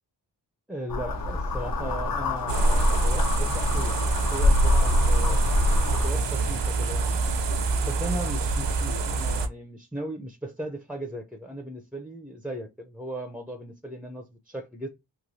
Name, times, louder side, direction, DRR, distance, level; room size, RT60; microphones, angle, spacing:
voice 1, 0.7-5.4 5.9-7.2 7.8-14.9, right 1 dB, 5° right, 0.4 m, -37 dB
sound 1, 0.9-6.1, left 1 dB, 55° left, 0.6 m, -23 dB
sound 2, 1.1-6.6, right 1 dB, 80° left, 1.4 m, -41 dB
sound 3, 2.5-9.5, right 4 dB, 75° right, 0.6 m, -27 dB
3.1 x 2.6 x 2.6 m
wide cardioid pair, 65°, 43 cm